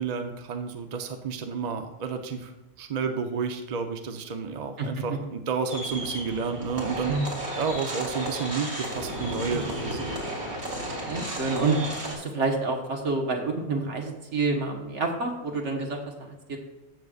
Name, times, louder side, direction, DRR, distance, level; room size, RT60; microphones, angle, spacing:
voice 1, 0.0-7.1 7.6-10.1, right 5 dB, 40° right, 6 dB, 0.7 m, -31 dB
sound 1, 5.7-12.1, right 1 dB, 65° right, 2.5 m, -33 dB
voice 2, 11.1-11.8 12.1-16.6, right 3 dB, 80° right, 2 dB, 1.7 m, -28 dB
15.0 x 6.5 x 2.4 m, 1.1 s
omnidirectional pair, 1.2 m